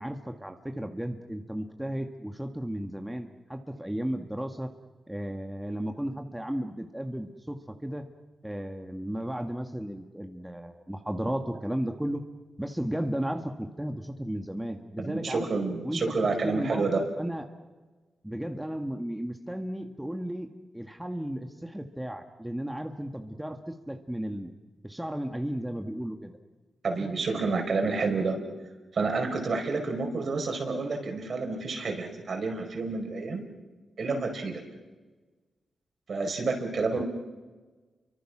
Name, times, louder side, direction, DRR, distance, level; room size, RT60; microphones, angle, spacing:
voice 1, 0.0-4.7 5.1-8.1 8.4-12.2 12.6-15.5 15.8-16.1 16.4-17.4 18.2-20.5 20.7-24.5 24.8-26.3 36.9-37.0, equal, 5° right, 4 dB, 1.7 m, -34 dB
voice 2, 15.0-17.0 26.8-28.4 28.9-33.4 34.0-34.6 36.1-37.0, right 3 dB, 60° right, 3 dB, 5.1 m, -29 dB
29.5 x 24.0 x 6.2 m, 1.3 s
cardioid pair, 80°, 0 cm